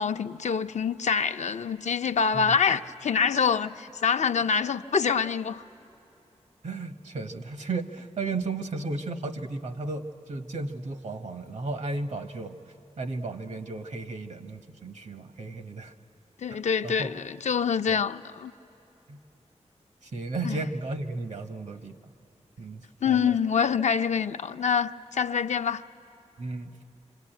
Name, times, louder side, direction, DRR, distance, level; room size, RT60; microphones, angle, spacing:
voice 1, 0.0-5.6 16.4-18.5 20.4-20.6 23.0-25.8, left 6 dB, 80° left, 0.5 m, -26 dB
voice 2, 6.6-12.6 13.0-15.9 16.5-17.1 17.9-18.0 19.1-19.2 20.0-22.1 22.6-23.4 26.4-26.7, right 3 dB, 80° right, 1.2 m, -34 dB
26.0 x 25.5 x 9.0 m
wide cardioid pair, 70°, 12 cm